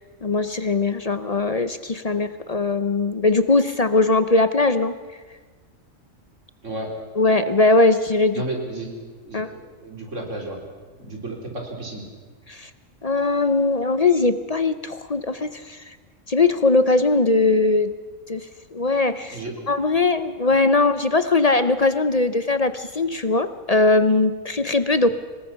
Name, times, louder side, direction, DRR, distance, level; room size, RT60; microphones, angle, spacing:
voice 1, 0.2-4.9 7.2-8.4 9.3-9.5 12.5-12.7 13.0-16.0 16.3-17.9 18.3-19.4 19.7-25.1, left 3 dB, 40° left, 12 dB, 0.6 m, -20 dB
voice 2, 8.3-10.6 11.0-12.1 19.3-19.7 20.5-20.6, right 2 dB, 70° right, 0 dB, 4.1 m, -33 dB
25.0 x 20.0 x 5.8 m, 1.4 s
omnidirectional pair, 1.3 m